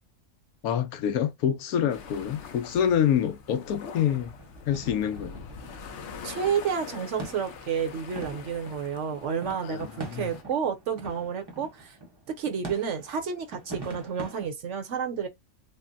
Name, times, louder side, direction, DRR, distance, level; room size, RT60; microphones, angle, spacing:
voice 1, 0.6-4.3 4.7-5.5 9.6-10.3, left 9 dB, 80° left, 1.1 m, -27 dB
sound 1, 1.9-10.4, left 5 dB, 60° left, 0.8 m, -44 dB
sound 2, 4.4-14.5, right 2 dB, 20° right, 0.8 m, -44 dB
voice 2, 6.2-12.0 12.3-15.3, right 7 dB, 60° right, 0.9 m, -30 dB
3.6 x 2.0 x 2.5 m
omnidirectional pair, 1.5 m